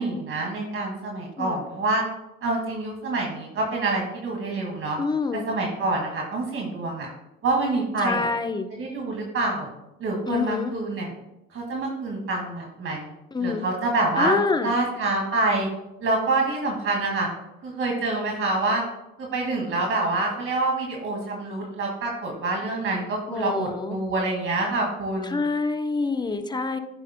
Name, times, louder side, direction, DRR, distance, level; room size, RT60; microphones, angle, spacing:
voice 1, 0.0-2.0 2.4-5.0 5.3-7.1 7.4-8.3 8.7-9.7 10.0-11.1 11.5-13.1 13.4-14.4 14.6-15.7 16.0-17.3 17.6-18.8 19.2-25.4, right 2 dB, 50° right, 0 dB, 2.1 m, -26 dB
voice 2, 5.0-5.5 8.0-8.7 10.3-10.8 13.3-13.7 14.2-14.7 23.3-24.0 25.2-26.8, left 4 dB, 15° left, 8 dB, 0.8 m, -26 dB
10.5 x 8.4 x 2.2 m, 0.92 s
supercardioid pair, 75°, 29 cm